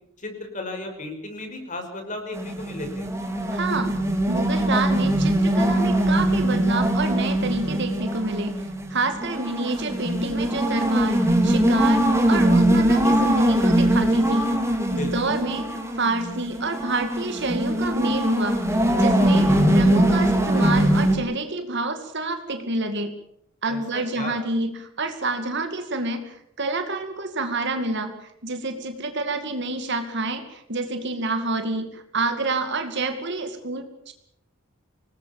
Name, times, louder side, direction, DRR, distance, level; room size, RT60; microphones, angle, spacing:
voice 1, 0.2-3.1 14.9-15.3 23.7-24.3, left 2 dB, 35° left, 5 dB, 5.7 m, -35 dB
sound 1, 2.3-21.2, right 1 dB, 15° right, 3.7 m, -21 dB
voice 2, 3.5-4.0 4.3-14.5 14.9-23.1 23.6-34.1, right 2 dB, 55° right, 7 dB, 2.4 m, -28 dB
26.0 x 19.5 x 7.2 m, 0.75 s
head